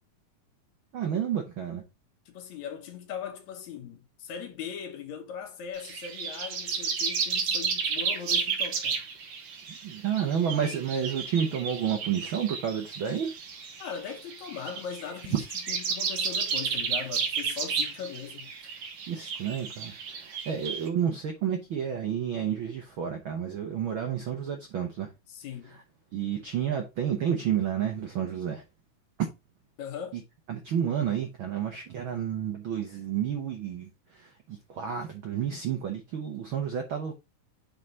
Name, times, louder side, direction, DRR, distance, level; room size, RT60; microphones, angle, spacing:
voice 1, 0.9-1.8 9.8-13.3 15.3-15.4 19.1-25.1 26.1-28.6 30.1-30.2 30.5-37.1, right 8 dB, 70° right, 1.2 m, -30 dB
voice 2, 2.3-9.0 13.8-18.8 25.3-25.8 29.8-30.2, left 7 dB, 70° left, 2.1 m, -39 dB
sound 1, 5.7-20.9, right 6 dB, 55° right, 1.7 m, -32 dB
8.2 x 3.8 x 4.1 m
omnidirectional pair, 3.7 m